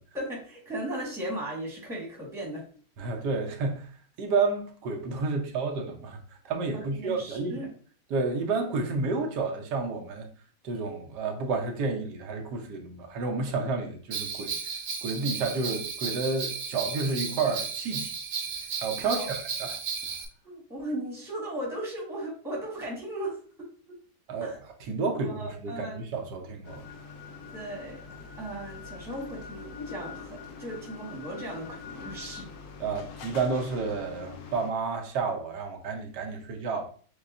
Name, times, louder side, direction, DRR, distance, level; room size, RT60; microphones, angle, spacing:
voice 1, 0.1-2.7 3.0-3.1 6.7-7.7 19.0-19.3 20.4-23.4 24.4-24.6 25.0-26.0 27.5-28.0 28.4-32.5, right 1 dB, ahead, 1.1 m, -37 dB
voice 2, 3.0-3.9 4.2-6.2 6.4-7.7 8.1-10.3 10.6-14.5 15.0-18.1 18.8-19.7 24.3-24.5 24.9-26.8 32.8-36.9, right 4 dB, 85° right, 1.3 m, -30 dB
Bell, 14.1-20.3, right 6 dB, 65° right, 1.0 m, -34 dB
sound 1, 26.6-34.7, left 5 dB, 70° left, 1.0 m, -43 dB
6.6 x 2.3 x 2.4 m
omnidirectional pair, 1.8 m